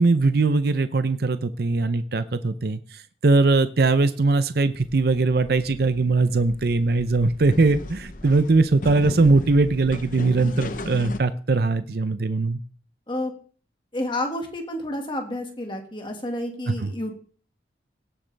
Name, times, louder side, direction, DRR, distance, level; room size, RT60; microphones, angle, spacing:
voice 1, 0.0-12.6 16.8-16.9, right 3 dB, 55° right, 12 dB, 0.6 m, -21 dB
sound 1, 4.8-11.2, left 2 dB, 45° left, 0.7 m, -36 dB
voice 2, 13.9-17.1, left 1 dB, 25° left, 3 dB, 1.8 m, -30 dB
17.5 x 7.9 x 3.4 m, 0.42 s
head